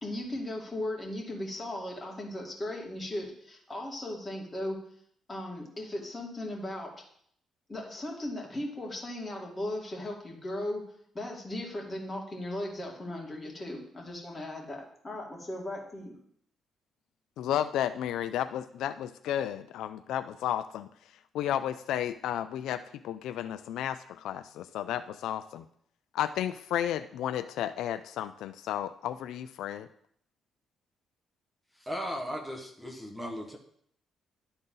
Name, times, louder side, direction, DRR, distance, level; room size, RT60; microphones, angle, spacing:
voice 1, 0.0-4.8 5.3-6.9 7.7-10.8 11.1-16.2, left 1 dB, 20° left, -1 dB, 2.3 m, -37 dB
voice 2, 17.4-20.9 21.3-25.7 26.1-29.9, left 11 dB, 85° left, 11 dB, 0.3 m, -33 dB
voice 3, 31.8-33.6, equal, 5° right, 1 dB, 1.4 m, -37 dB
11.5 x 4.0 x 3.9 m, 0.65 s
cardioid pair, 90°, 0 cm